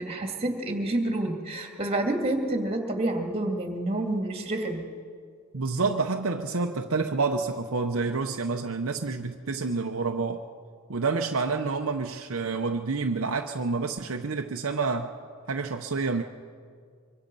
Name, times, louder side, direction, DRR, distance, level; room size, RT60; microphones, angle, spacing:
voice 1, 0.0-4.9, right 1 dB, 25° right, 2.5 m, -28 dB
voice 2, 5.5-10.4 10.9-15.1 15.5-16.2, right 4 dB, 65° right, 0.8 m, -28 dB
24.5 x 24.0 x 5.5 m
head